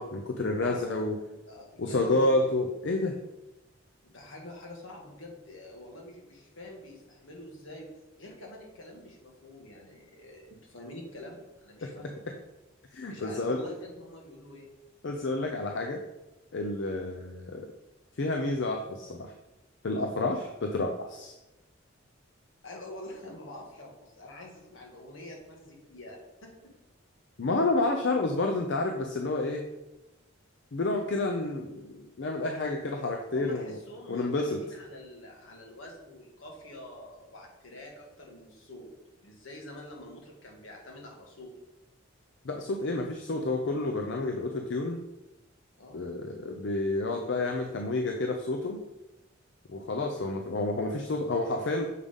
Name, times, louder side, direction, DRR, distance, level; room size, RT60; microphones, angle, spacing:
voice 1, 0.0-1.2 1.8-3.2 11.8-11.9 12.9-13.6 15.0-16.0 16.5-17.7 18.2-19.3 19.8-21.3 27.4-29.6 30.7-33.8 34.1-34.6 42.4-45.0 45.9-48.8 49.7-51.9, left 2 dB, 60° left, 3 dB, 0.5 m, -29 dB
voice 2, 0.6-1.0 1.3-2.5 4.0-7.9 8.2-12.3 13.1-14.7 22.6-26.7 27.8-27.9 33.3-38.9 39.2-41.5 45.8-46.1 50.1-50.4, left 1 dB, 80° left, 0 dB, 1.7 m, -46 dB
6.5 x 5.3 x 3.6 m, 0.98 s
head